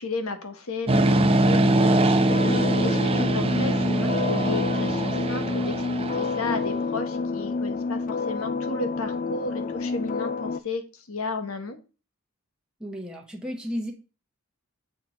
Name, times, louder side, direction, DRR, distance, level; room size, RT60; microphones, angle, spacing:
voice 1, 0.0-5.8 6.1-11.8, left 3 dB, 75° left, 8 dB, 1.2 m, -33 dB
sound 1, 0.9-6.7, right 2 dB, 25° right, 0.6 m, -22 dB
sound 2, 2.3-10.6, left 4 dB, 35° left, 0.3 m, -29 dB
voice 2, 12.8-13.9, equal, 5° right, 0 dB, 1.0 m, -33 dB
7.2 x 4.4 x 4.5 m, 0.33 s
head